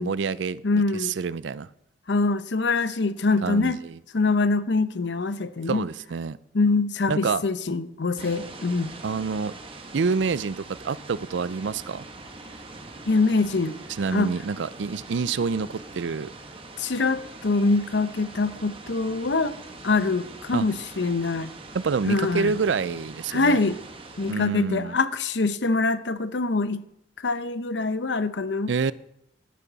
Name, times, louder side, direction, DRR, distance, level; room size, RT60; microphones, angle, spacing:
voice 1, 0.0-1.7 3.4-4.0 5.7-6.4 7.1-7.4 9.0-9.5 9.9-12.0 14.0-16.3 20.5-20.7 21.7-23.6 24.3-25.0 28.7-28.9, right 5 dB, 75° right, 0.4 m, -27 dB
voice 2, 0.6-1.1 2.1-3.8 4.1-5.8 6.5-8.9 13.1-13.8 14.1-14.3 16.8-19.6 19.8-21.5 22.1-22.5 23.3-23.8 24.2-26.8 27.2-28.7, left 3 dB, 70° left, 0.7 m, -24 dB
sound 1, 8.2-24.3, right 2 dB, 30° right, 1.3 m, -43 dB
12.0 x 11.5 x 4.0 m
head